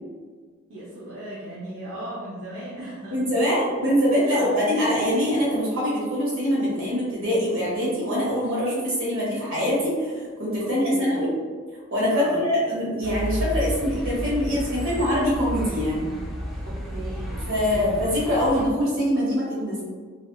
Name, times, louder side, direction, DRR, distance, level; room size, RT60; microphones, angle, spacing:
voice 1, 0.7-3.3 4.3-4.6 10.6-11.2 12.1-12.4 16.6-17.5 17.7-18.0, right 1 dB, 65° right, -8 dB, 0.6 m, -37 dB
voice 2, 3.1-11.3 11.9-16.1 17.5-19.8, equal, 80° right, -6 dB, 1.4 m, -23 dB
sound 1, 13.0-18.7, equal, ahead, 0.4 m, -32 dB
3.3 x 2.5 x 2.3 m, 1.6 s
head